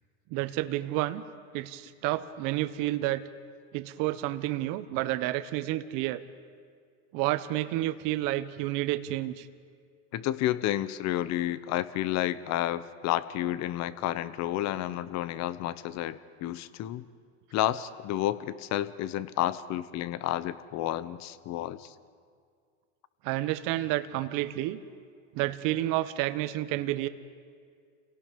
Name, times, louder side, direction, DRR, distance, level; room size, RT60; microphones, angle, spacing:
voice 1, 0.3-1.2 1.5-3.2 3.7-6.2 7.1-9.5 23.2-24.8 25.3-27.1, right 15 dB, 55° right, 12 dB, 1.1 m, -30 dB
voice 2, 10.1-17.0 17.5-21.9, left 13 dB, 45° left, 15 dB, 1.0 m, -31 dB
29.5 x 17.5 x 5.3 m, 2.1 s
supercardioid pair, 115°, 37 cm